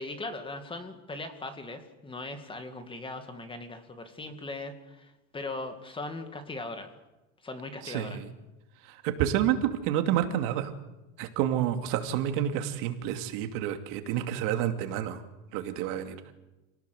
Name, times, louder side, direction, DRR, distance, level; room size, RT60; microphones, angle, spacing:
voice 1, 0.0-6.9 7.4-8.2, left 2 dB, 15° left, 7 dB, 2.2 m, -39 dB
voice 2, 7.8-8.3 8.8-10.7 11.2-15.2 15.5-16.2, right 11 dB, 55° right, 6 dB, 2.7 m, -29 dB
28.0 x 18.5 x 8.0 m, 1.0 s
supercardioid pair, 145°, 39 cm